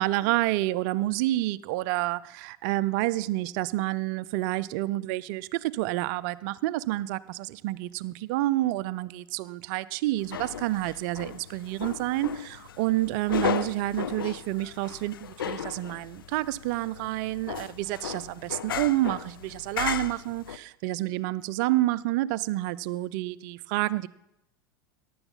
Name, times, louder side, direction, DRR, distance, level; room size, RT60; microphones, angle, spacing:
voice 1, 0.0-24.1, right 17 dB, 55° right, 18 dB, 0.5 m, -29 dB
sound 1, 10.2-20.6, left 8 dB, 85° left, 0.5 m, -35 dB
15.0 x 11.0 x 3.9 m, 0.84 s
hypercardioid pair, 90°, 11 cm